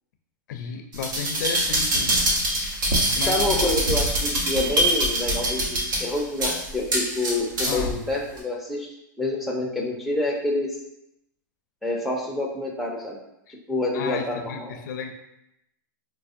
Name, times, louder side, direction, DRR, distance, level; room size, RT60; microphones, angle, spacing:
voice 1, 0.5-2.2 3.2-3.6 7.7-8.1 13.5-13.6 13.9-15.1, left 6 dB, 65° left, 5 dB, 0.4 m, -33 dB
sound 1, 0.9-7.9 8.4-8.5, right 1 dB, 75° right, 0.9 m, -24 dB
voice 2, 3.3-10.8 11.8-13.2 13.7-14.7, left 2 dB, ahead, -1 dB, 0.5 m, -27 dB
4.6 x 2.1 x 2.5 m, 0.83 s
hypercardioid pair, 135°, 10 cm